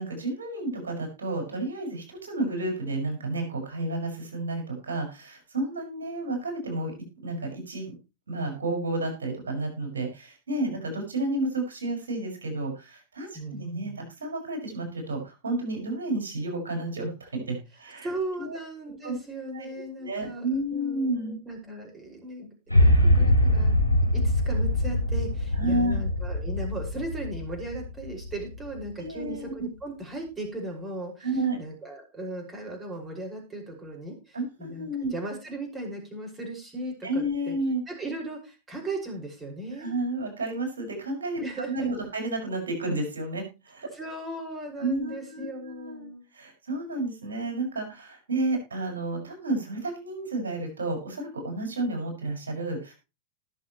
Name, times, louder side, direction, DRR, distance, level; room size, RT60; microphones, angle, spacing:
voice 1, 0.0-6.9 7.2-7.9 8.3-18.1 18.4-18.6 19.0-19.2 19.5-19.7 20.0-21.4 25.6-26.0 29.0-29.5 31.2-31.6 34.3-35.1 37.0-37.8 39.8-43.9 44.8-52.9, right 2 dB, 70° right, 3 dB, 5.4 m, -31 dB
voice 2, 13.3-14.0 18.0-23.8 24.1-37.6 37.9-39.9 41.4-41.9 43.9-46.2, right 2 dB, 15° right, 1 dB, 5.6 m, -37 dB
sound 1, 22.7-28.9, left 1 dB, 85° right, 2.6 m, -23 dB
19.0 x 6.6 x 3.1 m, 0.28 s
figure-of-eight pair, 90°, 0 cm